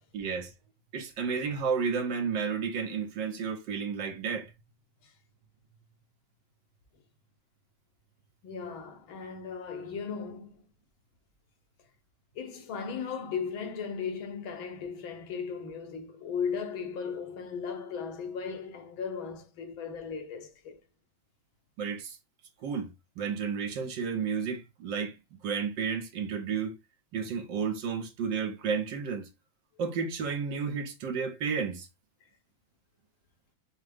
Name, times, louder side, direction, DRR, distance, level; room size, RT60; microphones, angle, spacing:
voice 1, 0.1-0.5 0.9-4.5 21.8-22.2 22.6-26.8 27.1-29.3 29.8-31.9, right 6 dB, 65° right, 1.5 m, -32 dB
voice 2, 8.4-10.6 12.4-20.8, left 6 dB, 80° left, 1.8 m, -37 dB
6.4 x 2.2 x 3.4 m
omnidirectional pair, 2.2 m